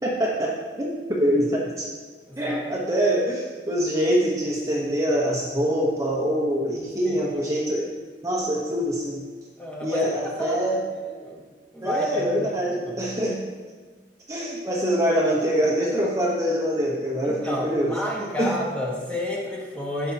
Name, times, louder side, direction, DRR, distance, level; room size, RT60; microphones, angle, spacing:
voice 1, 0.0-1.9 2.4-7.9 8.2-9.2 9.8-10.8 11.8-13.4 14.3-17.9 18.4-18.6, equal, 20° right, -3 dB, 1.2 m, -24 dB
voice 2, 2.3-2.9 7.0-7.4 9.6-10.6 11.0-11.5 11.7-12.6 12.9-13.1 17.2-20.1, left 1 dB, 10° left, -4 dB, 1.6 m, -31 dB
16.5 x 5.9 x 3.0 m, 1.4 s
head